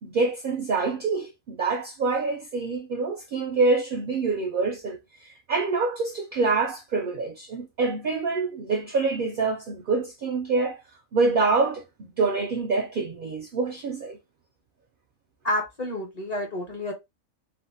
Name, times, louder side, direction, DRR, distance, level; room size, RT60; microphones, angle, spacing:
voice 1, 0.0-10.8 11.1-14.2, right 4 dB, 70° right, 0.5 m, -26 dB
voice 2, 15.4-16.9, left 1 dB, 40° left, 0.6 m, -29 dB
3.3 x 2.1 x 2.6 m
omnidirectional pair, 1.4 m